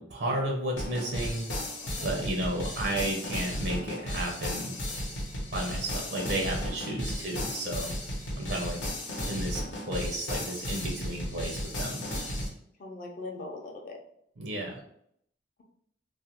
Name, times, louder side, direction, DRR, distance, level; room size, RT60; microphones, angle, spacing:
voice 1, 0.0-1.4 2.0-4.8 5.5-7.9 8.4-8.9 9.2-12.0 14.4-14.8, right 1 dB, 65° right, 1 dB, 0.5 m, -33 dB
sound 1, 0.8-12.5, left 1 dB, 85° left, 0.8 m, -34 dB
voice 2, 6.8-7.4 12.8-14.0, left 2 dB, 50° left, 1 dB, 0.5 m, -41 dB
2.4 x 2.1 x 2.8 m, 0.70 s
head